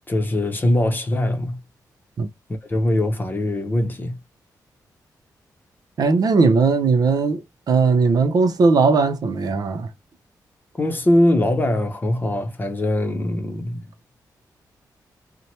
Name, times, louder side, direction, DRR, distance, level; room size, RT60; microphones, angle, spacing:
voice 1, 0.1-1.6 2.7-4.2 10.8-13.8, left 1 dB, 25° left, 0.7 m, -21 dB
voice 2, 6.0-9.9, right 4 dB, 60° right, 0.6 m, -18 dB
2.8 x 2.1 x 2.8 m
cardioid pair, 80°, 7 cm